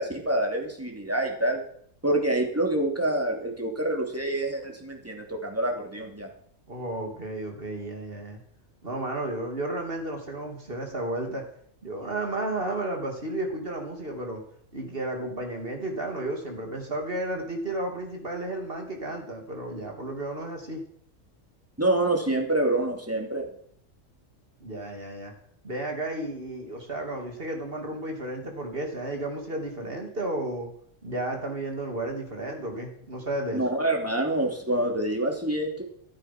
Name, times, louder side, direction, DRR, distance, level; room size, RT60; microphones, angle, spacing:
voice 1, 0.0-1.6 2.0-6.3 21.8-23.5 33.5-35.8, right 1 dB, 10° right, 1 dB, 2.8 m, -26 dB
voice 2, 6.7-8.4 8.8-11.4 11.8-14.4 14.7-20.8 24.6-25.3 25.6-30.7 31.0-33.6, right 1 dB, 45° right, 3 dB, 3.1 m, -33 dB
14.0 x 13.0 x 6.0 m, 0.64 s
omnidirectional pair, 1.4 m